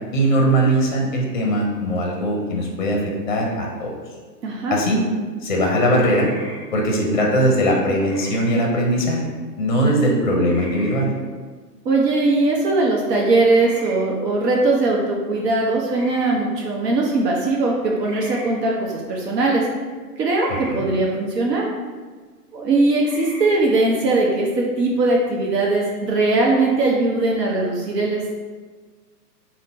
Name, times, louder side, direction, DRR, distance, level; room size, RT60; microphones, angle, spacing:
voice 1, 0.1-3.9 4.7-5.0 5.4-6.3 6.7-9.2 9.6-11.1 20.7-20.8, right 1 dB, 30° left, 0 dB, 0.5 m, -20 dB
voice 2, 4.4-4.8 11.8-19.7 20.2-21.7 22.5-28.4, right 2 dB, 75° right, -2 dB, 0.9 m, -20 dB
sound 1, 6.0-6.6 8.0-8.5 10.4-11.0 13.4-13.9 15.9-16.3 18.0-18.5 20.3-20.7 23.0-23.5, equal, 20° right, 1.2 m, -39 dB
3.8 x 2.2 x 3.9 m, 1.4 s
hypercardioid pair, 165°, 49 cm